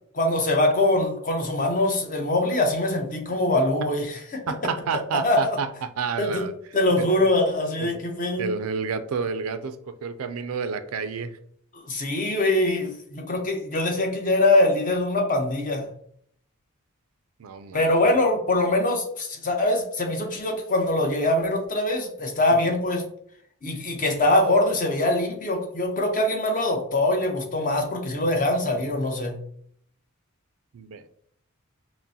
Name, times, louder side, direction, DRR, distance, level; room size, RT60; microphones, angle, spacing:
voice 1, 0.2-4.4 5.2-5.5 6.2-6.5 6.7-8.5 11.7-15.9 17.7-23.0 23.6-29.4, left 1 dB, 35° left, 2 dB, 0.8 m, -23 dB
voice 2, 4.5-6.5 7.8-7.9 8.4-11.4 17.4-17.9 30.7-31.1, right 5 dB, 75° right, 12 dB, 0.4 m, -30 dB
5.8 x 2.1 x 2.7 m, 0.65 s
head